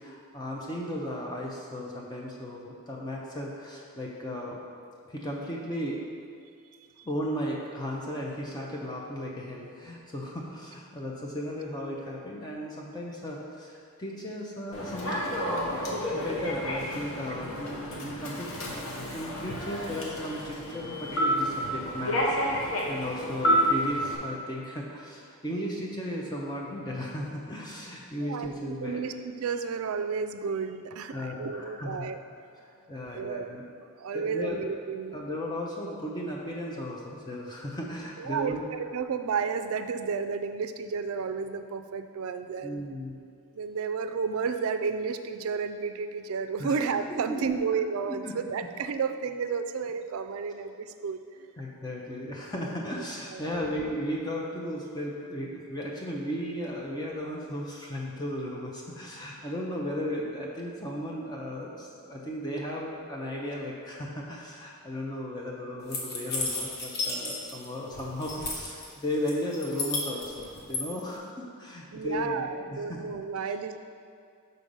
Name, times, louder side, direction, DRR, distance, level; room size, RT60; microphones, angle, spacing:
voice 1, 0.0-4.6 5.1-6.0 7.0-22.6 22.9-29.1 31.1-32.1 32.9-33.6 34.1-34.6 35.1-38.7 42.6-43.1 46.6-46.8 47.1-47.5 48.1-48.3 51.6-73.1, equal, 20° left, -2 dB, 0.5 m, -35 dB
Human voice / Subway metro underground, 14.7-24.2, equal, 70° left, 1.0 m, -30 dB
voice 2, 28.1-32.2 33.1-33.5 34.0-35.2 38.2-42.8 43.5-51.5 53.3-53.5 71.9-73.8, right 5 dB, 75° right, 9 dB, 0.4 m, -32 dB
sound 1, 65.9-67.7 67.9-68.9 69.3-70.8, left 3 dB, 45° left, 1.0 m, -33 dB
6.4 x 3.9 x 5.3 m, 2.3 s
head